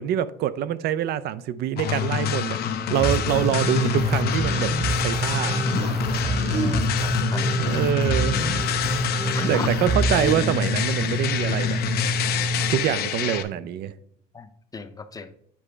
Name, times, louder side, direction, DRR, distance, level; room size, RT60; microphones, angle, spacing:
voice 1, 0.0-2.6 2.9-4.7 5.0-5.6 7.2-7.3 7.6-8.4 9.5-11.8 12.7-13.9, right 10 dB, 70° right, 15 dB, 0.5 m, -25 dB
sound 1, 1.8-13.4, left 10 dB, 70° left, 0.7 m, -27 dB
sound 2, 3.0-10.3, right 3 dB, 40° right, 1.1 m, -28 dB
sound 3, 3.3-12.8, right 1 dB, 20° right, 0.8 m, -28 dB
voice 2, 6.2-7.4 9.3-9.7 14.3-15.3, left 4 dB, 20° left, 10 dB, 0.6 m, -37 dB
8.5 x 4.9 x 3.2 m, 0.66 s
cardioid pair, 110°, 17 cm